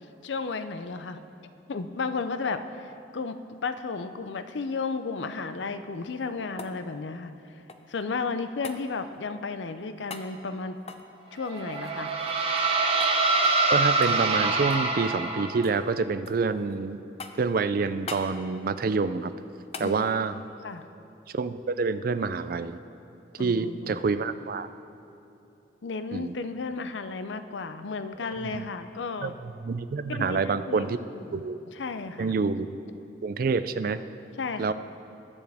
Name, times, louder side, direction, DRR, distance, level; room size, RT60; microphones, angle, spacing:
voice 1, 0.2-1.2 1.7-3.4 3.6-7.3 7.9-10.8 11.3-12.1 19.8-20.1 20.6-20.8 23.4-24.0 25.8-29.3 30.1-31.4 31.7-32.3 34.4-34.7, left 4 dB, 85° left, 10 dB, 0.5 m, -33 dB
sound 1, 6.0-8.0 8.6-8.8 10.1-10.3 10.8-12.8 13.0-13.2 13.4-13.7 14.0-14.9 15.2-15.8 16.3-16.8 17.2-17.6 18.1-18.3 19.7-19.9 22.3-22.4, left 4 dB, 35° left, 0.6 m, -43 dB
sound 2, 11.4-15.8, right 3 dB, 30° right, 0.9 m, -25 dB
voice 2, 13.7-17.0 17.4-19.3 19.8-20.4 21.3-22.8 23.4-24.7 26.1-26.3 28.4-28.7 29.2-31.0 31.3-31.7 32.2-32.7 33.2-34.0 34.6-34.7, right 4 dB, 50° right, 12 dB, 0.4 m, -27 dB
21.0 x 7.1 x 3.5 m, 2.9 s
head